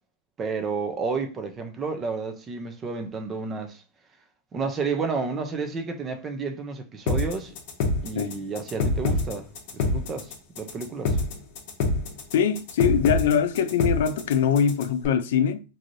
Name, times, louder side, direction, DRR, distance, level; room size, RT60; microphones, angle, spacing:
voice 1, 0.4-3.8 4.5-7.6 8.0-11.2, right 4 dB, 15° right, 0.5 m, -31 dB
sound 1, 7.1-15.0, left 3 dB, 45° left, 0.8 m, -26 dB
voice 2, 12.3-15.6, left 7 dB, 70° left, 0.4 m, -23 dB
3.1 x 2.6 x 2.6 m
supercardioid pair, 175°, 0 cm